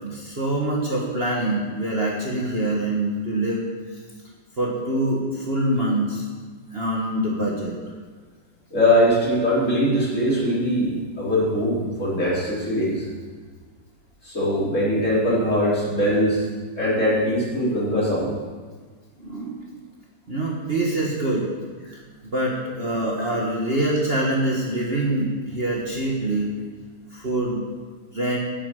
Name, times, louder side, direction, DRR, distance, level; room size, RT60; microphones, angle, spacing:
voice 1, 0.0-3.6 4.6-6.2 6.7-7.7 19.2-19.6 20.3-21.5 22.3-26.5 27.1-27.6 28.1-28.4, right 1 dB, 35° right, -3 dB, 1.7 m, -24 dB
voice 2, 8.7-13.1 14.2-16.4 16.8-18.3 23.2-23.3, equal, 40° left, -8 dB, 4.9 m, -21 dB
10.5 x 8.8 x 8.1 m, 1.5 s
omnidirectional pair, 2.0 m